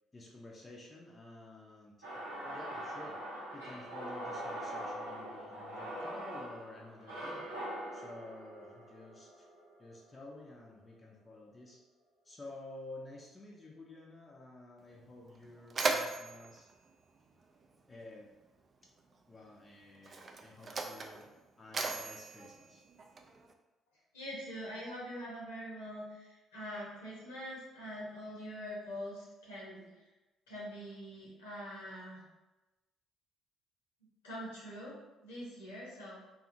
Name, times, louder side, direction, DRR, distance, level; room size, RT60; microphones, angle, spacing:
voice 1, 0.1-1.9 2.4-3.2 3.5-7.5 7.9-9.5 9.8-11.8 12.2-16.7 17.9-18.3 19.3-21.3 21.6-22.8, left 2 dB, 25° left, -2 dB, 0.5 m, -51 dB
sound 1, 2.0-10.2, right 1 dB, 85° right, 0.9 m, -43 dB
Mechanisms, 14.8-14.9 15.3-18.0 19.0-19.1 19.9-23.5, right 3 dB, 35° right, 0.3 m, -38 dB
voice 2, 24.1-29.8 30.5-32.2 34.0-34.9 35.2-36.2, equal, 75° left, -6 dB, 0.9 m, -44 dB
2.7 x 2.4 x 2.6 m, 1.1 s
figure-of-eight pair, 45°, 0 cm